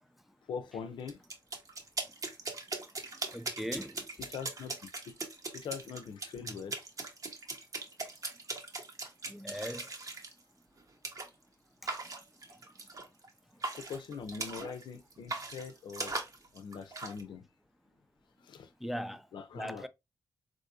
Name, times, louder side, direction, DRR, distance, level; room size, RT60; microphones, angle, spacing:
voice 1, 0.5-1.2 4.2-5.2 5.5-6.8 13.8-16.1 16.5-17.4 18.4-18.7 19.3-19.9, left 6 dB, 85° left, 0.5 m, -42 dB
sound 1, 1.1-10.3 11.0-11.3 11.9-13.3 13.6-14.8 15.1-17.2, right 3 dB, 50° right, 0.8 m, -40 dB
voice 2, 3.3-4.1 9.3-9.9 11.8-11.9 18.8-19.3 19.5-19.9, equal, 5° right, 0.3 m, -39 dB
3.6 x 2.6 x 2.5 m
cardioid pair, 60°, 8 cm